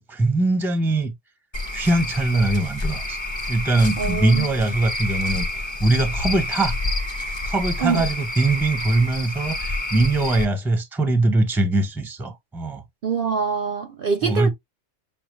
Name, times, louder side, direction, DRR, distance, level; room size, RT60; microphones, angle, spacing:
voice 1, 0.1-1.1 1.7-3.2 3.5-5.5 5.8-6.8 7.4-12.8 14.2-14.5, right 2 dB, ahead, 0.6 m, -21 dB
Cricket / Frog, 1.5-10.4, left 2 dB, 25° left, 1.0 m, -28 dB
voice 2, 4.0-4.5 7.8-8.1 13.0-14.5, right 5 dB, 55° right, 0.7 m, -24 dB
6.6 x 2.2 x 3.1 m
omnidirectional pair, 1.3 m